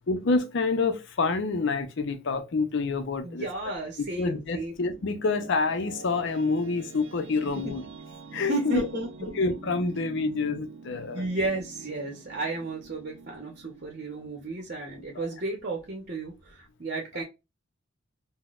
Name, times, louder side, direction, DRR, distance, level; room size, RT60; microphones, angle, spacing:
voice 1, 0.1-3.5 4.2-7.8 8.3-8.9 9.2-11.3 15.1-15.3, left 3 dB, 65° left, 0.6 m, -27 dB
voice 2, 3.2-4.7 8.5-9.3 11.1-17.2, right 2 dB, 45° right, 0.8 m, -33 dB
sound 1, 4.6-15.4, right 4 dB, 70° right, 0.4 m, -45 dB
3.8 x 2.1 x 2.4 m
head